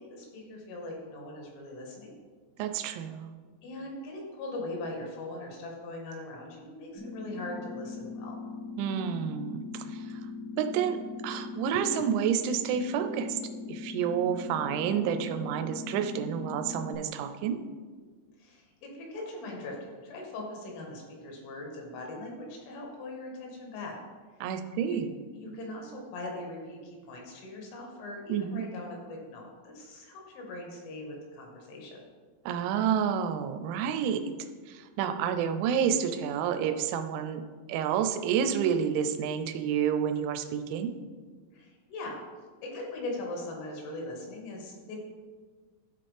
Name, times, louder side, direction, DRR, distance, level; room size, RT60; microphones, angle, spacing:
voice 1, 0.0-2.1 3.6-8.4 18.4-24.0 24.7-25.0 25.3-32.0 41.5-42.2 42.6-45.0, left 2 dB, 85° left, 0 dB, 3.9 m, -40 dB
voice 2, 2.6-3.3 8.8-10.2 10.6-13.4 13.7-17.6 24.4-25.1 28.3-28.6 32.5-34.3 34.7-37.4 37.7-40.9, right 8 dB, 85° right, 8 dB, 2.9 m, -29 dB
sound 1, 6.9-16.9, left 3 dB, 70° right, 2.1 m, -40 dB
13.0 x 4.3 x 3.3 m, 1.5 s
omnidirectional pair, 5.4 m